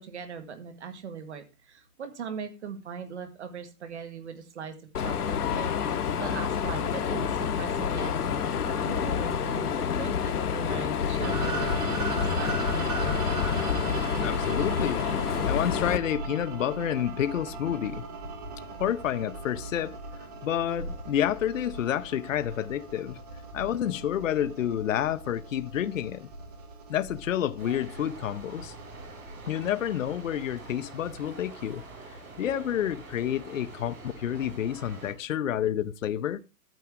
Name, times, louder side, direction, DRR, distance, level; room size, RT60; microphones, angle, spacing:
voice 1, 0.0-5.7 6.2-13.6, right 6 dB, 50° right, 1.7 m, -40 dB
Mechanisms, 4.9-16.0, left 7 dB, 85° left, 1.2 m, -28 dB
sound 1, 11.2-31.2, right 2 dB, 25° right, 1.4 m, -38 dB
voice 2, 14.2-18.0 18.8-20.0 20.4-23.2 23.5-26.3 26.9-28.7 29.5-31.8 32.4-36.4, left 10 dB, 60° left, 0.6 m, -29 dB
sound 2, 27.6-35.1, right 3 dB, 65° right, 6.1 m, -45 dB
11.5 x 9.1 x 3.5 m
hypercardioid pair, 180°, 44 cm